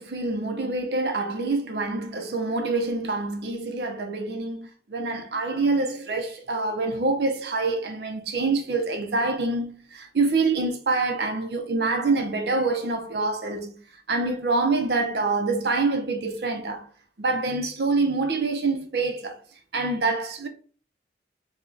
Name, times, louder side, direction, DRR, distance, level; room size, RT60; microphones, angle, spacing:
voice 1, 0.0-13.8 14.1-16.9 17.2-19.4 19.7-20.5, right 3 dB, 70° right, 0.7 m, -26 dB
4.8 x 2.3 x 2.7 m
head